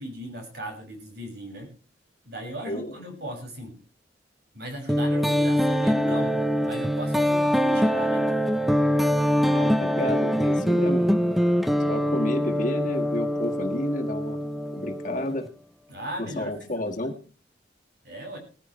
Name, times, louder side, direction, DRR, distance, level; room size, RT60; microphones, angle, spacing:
voice 1, 0.0-1.7 2.2-3.8 4.5-6.4 6.6-8.3 15.9-17.1 18.0-18.4, right 1 dB, 60° right, 2 dB, 6.1 m, -37 dB
sound 1, 4.9-15.5, equal, ahead, 0.6 m, -23 dB
voice 2, 9.4-11.1 11.9-14.4 14.7-15.5 16.2-17.1, left 1 dB, 45° left, 3 dB, 1.8 m, -31 dB
18.5 x 14.5 x 3.2 m, 0.39 s
head